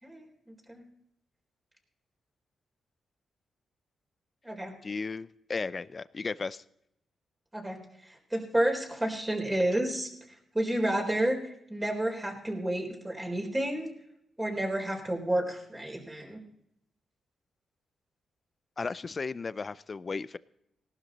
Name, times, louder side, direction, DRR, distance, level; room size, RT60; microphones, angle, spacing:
voice 1, 0.0-0.9 4.4-4.7 7.5-10.1 10.5-13.9 14.4-16.4, right 1 dB, 15° right, 1 dB, 4.1 m, -30 dB
voice 2, 4.8-6.6 18.8-20.4, left 4 dB, 35° left, 17 dB, 0.5 m, -35 dB
18.0 x 12.0 x 4.2 m, 0.77 s
cardioid pair, 85°, 0 cm